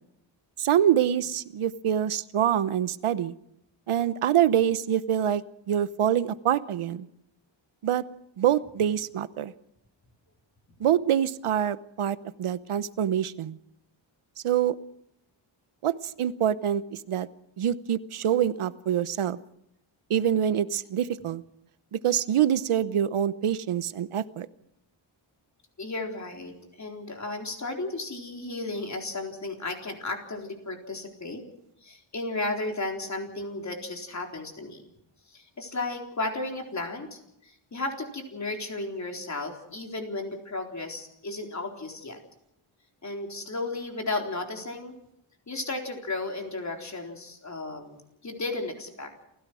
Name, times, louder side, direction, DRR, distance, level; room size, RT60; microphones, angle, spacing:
voice 1, 0.6-3.3 3.9-7.1 7.8-8.0 8.4-9.5 10.8-13.6 14.4-14.8 15.8-17.3 17.6-19.4 20.1-21.4 21.9-24.5, right 10 dB, 90° right, 15 dB, 1.0 m, -25 dB
voice 2, 25.8-31.5 31.8-34.8 35.3-42.2 43.0-45.0 45.5-49.1, left 2 dB, 35° left, 3 dB, 4.0 m, -34 dB
28.5 x 16.5 x 6.3 m, 0.78 s
wide cardioid pair, 155°, 49 cm